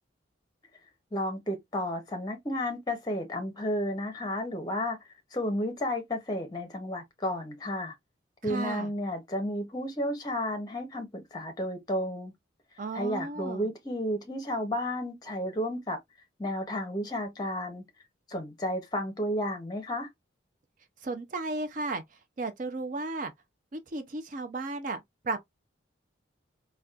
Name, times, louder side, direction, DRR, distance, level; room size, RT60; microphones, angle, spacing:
voice 1, 1.1-5.0 5.3-7.9 8.4-12.3 12.9-16.0 16.4-17.8 18.3-20.1, left 1 dB, 20° left, 0.6 m, -32 dB
voice 2, 8.4-8.9 12.8-13.7 21.0-22.0 22.4-23.3 23.7-25.4, right 3 dB, 40° right, 0.4 m, -34 dB
4.0 x 2.2 x 2.3 m
head